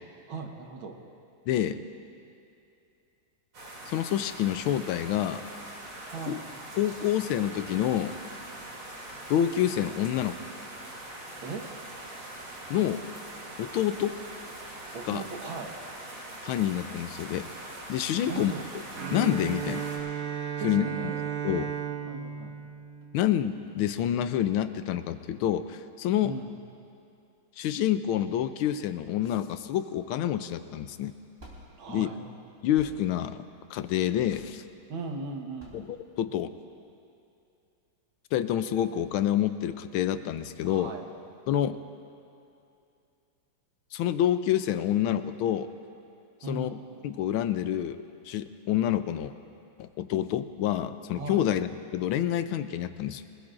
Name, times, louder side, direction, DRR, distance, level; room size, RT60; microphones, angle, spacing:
voice 1, 0.3-1.0 6.1-6.4 11.4-11.7 14.9-15.8 18.3-18.7 20.6-21.2 22.1-22.6 26.2-26.6 31.7-32.2 34.9-35.8 40.6-41.1 46.4-46.9 51.1-51.4, right 4 dB, 70° right, 2 dB, 2.0 m, -38 dB
voice 2, 1.5-1.8 3.9-5.4 6.3-6.4 6.8-8.2 9.3-10.3 12.7-13.0 13.6-14.2 15.0-15.2 16.4-17.5 17.9-18.5 19.1-19.9 20.6-20.8 21.4-21.7 23.1-26.4 27.6-31.1 31.9-32.1 32.6-33.4 33.7-34.6 35.7-36.5 38.3-40.9 41.5-41.8 43.9-45.7 46.5-46.8 47.0-49.3 49.8-53.2, left 11 dB, 75° left, 11 dB, 1.4 m, -28 dB
sound 1, 3.5-20.0, right 1 dB, 90° right, 3.8 m, -42 dB
Bowed string instrument, 18.9-23.8, right 8 dB, 50° right, 1.2 m, -35 dB
sound 2, 31.4-36.8, equal, 25° right, 4.0 m, -53 dB
24.5 x 20.0 x 2.5 m, 2.6 s
omnidirectional pair, 2.4 m